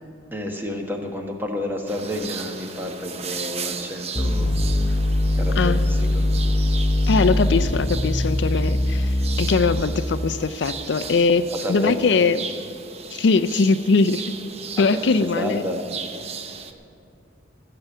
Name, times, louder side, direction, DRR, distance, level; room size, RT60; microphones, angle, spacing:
voice 1, 0.3-4.5 5.3-6.2 11.6-12.1 14.8-15.0 15.3-15.8, left 1 dB, 10° right, 3 dB, 1.2 m, -30 dB
sound 1, 1.9-16.7, right 5 dB, 35° right, 0.7 m, -37 dB
sound 2, 4.2-10.1, left 1 dB, 35° left, 0.8 m, -22 dB
voice 2, 7.1-12.4 13.1-14.3 14.8-15.6, left 4 dB, 65° left, 12 dB, 0.4 m, -21 dB
15.5 x 6.8 x 8.2 m, 2.6 s
head